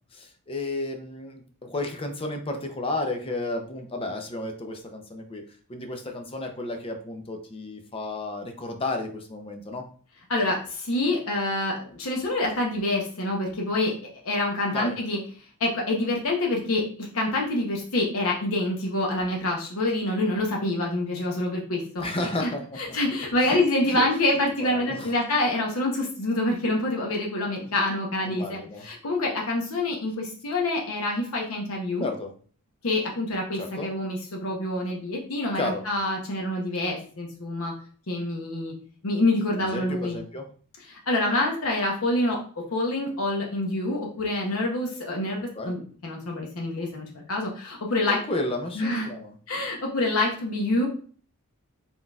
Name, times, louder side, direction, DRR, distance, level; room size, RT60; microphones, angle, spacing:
voice 1, 0.1-5.4 5.7-9.8 14.7-15.0 22.0-22.8 23.4-23.6 23.9-24.1 24.6-25.1 28.3-28.9 32.0-32.3 33.5-33.9 35.6-35.8 39.5-40.5 45.5-45.8 48.1-49.3, left 2 dB, 25° left, 5 dB, 0.5 m, -32 dB
voice 2, 10.3-13.9 14.2-15.2 15.6-22.5 22.8-32.1 32.8-37.7 38.1-38.7 39.0-40.2 40.9-42.4 42.7-48.2 48.7-49.1 49.5-50.9, left 2 dB, 75° left, -1 dB, 0.8 m, -26 dB
3.9 x 3.9 x 2.3 m, 0.43 s
head